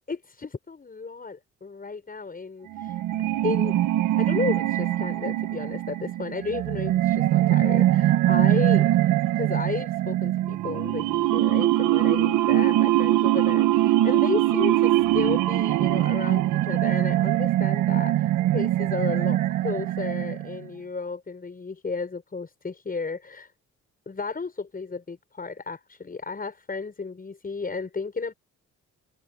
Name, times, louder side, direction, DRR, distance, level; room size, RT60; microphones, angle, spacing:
voice 1, 0.1-3.0 3.4-3.8 4.2-8.9 9.3-23.5 24.1-28.3, left 4 dB, 30° left, 6.4 m, -33 dB
sound 1, 2.7-20.7, right 14 dB, 85° right, 1.3 m, -22 dB
cardioid pair, 90°, 30 cm